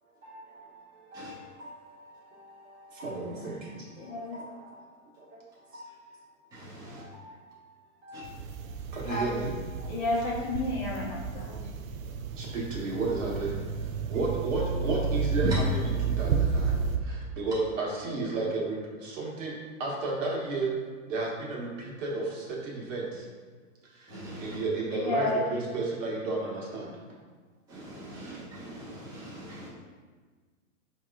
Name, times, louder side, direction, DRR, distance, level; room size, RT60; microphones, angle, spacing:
voice 1, 0.2-3.6 4.1-4.7 5.3-5.4 5.7-6.1 6.8-7.5 8.0-8.4 8.9-9.5 9.8-9.9 12.4-13.5 14.1-15.5 16.0-16.7 17.0-19.5 19.8-20.7 21.1-23.3 24.0-24.1 24.4-26.9 28.2-28.4, right 3 dB, 65° right, -5 dB, 1.3 m, -33 dB
voice 2, 3.2-3.6 4.1-4.4 9.1-9.3 9.9-11.6 24.9-25.4, left 2 dB, 30° left, -5 dB, 0.8 m, -31 dB
voice 3, 6.5-7.0 8.1-8.2 15.4-15.6 24.1-24.6 27.7-29.7, right 2 dB, 10° right, -9 dB, 0.6 m, -38 dB
sound 1, 8.2-17.0, right 6 dB, 85° right, 0.5 m, -32 dB
4.7 x 2.9 x 2.3 m, 1.5 s
hypercardioid pair, 135°, 41 cm